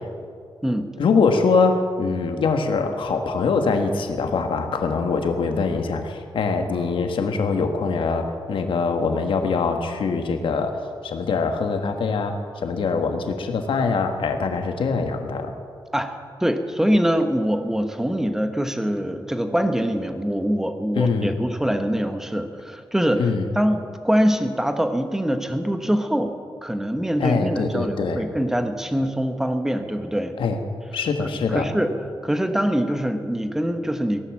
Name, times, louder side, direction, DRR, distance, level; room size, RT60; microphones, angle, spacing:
voice 1, 1.0-15.5 20.9-21.4 23.2-23.5 27.2-28.2 30.4-30.6 30.9-31.7, left 4 dB, 80° left, 5 dB, 1.5 m, -23 dB
voice 2, 16.4-23.3 23.5-26.3 26.6-30.3 31.5-31.9 32.2-34.2, equal, 5° right, 7 dB, 1.1 m, -23 dB
17.0 x 11.5 x 7.4 m, 2.2 s
wide cardioid pair, 155°, 9 cm